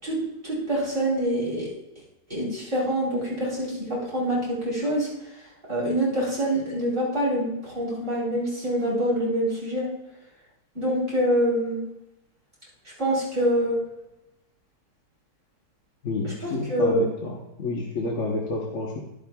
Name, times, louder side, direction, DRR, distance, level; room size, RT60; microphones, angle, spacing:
voice 1, 0.0-1.7 2.3-5.1 5.7-9.9 10.7-11.8 13.0-13.8 16.4-17.0, right 1 dB, 30° right, -7 dB, 4.2 m, -25 dB
voice 2, 16.0-19.0, left 3 dB, 50° left, -2 dB, 1.3 m, -29 dB
11.5 x 11.0 x 2.3 m, 0.93 s
omnidirectional pair, 1.8 m